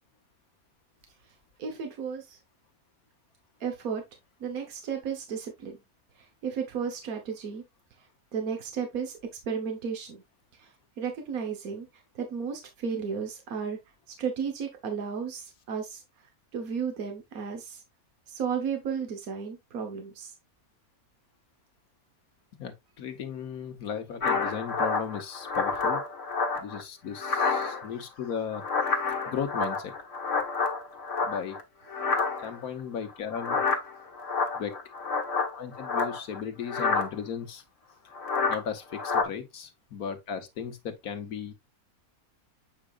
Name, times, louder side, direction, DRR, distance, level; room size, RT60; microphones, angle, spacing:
voice 1, 1.6-2.4 3.6-4.0 4.4-5.8 6.4-7.6 8.3-9.2 9.5-10.2 10.6-10.7 11.0-11.9 12.1-13.8 14.1-16.0 16.5-17.8 18.3-20.3, right 6 dB, 70° right, 1.6 m, -33 dB
voice 2, 22.6-26.0 26.6-28.6 29.3-29.9 31.2-31.6 32.4-33.6 34.5-34.8 35.6-37.6 38.0-38.1 38.5-41.5, left 7 dB, 85° left, 1.6 m, -36 dB
sound 1, 24.2-26.8 27.1-28.0 28.3-31.6 31.9-32.6 33.3-36.4 36.7-37.1 38.1-38.6 38.9-39.2, left 4 dB, 55° left, 1.7 m, -29 dB
8.0 x 4.9 x 2.4 m
omnidirectional pair, 1.5 m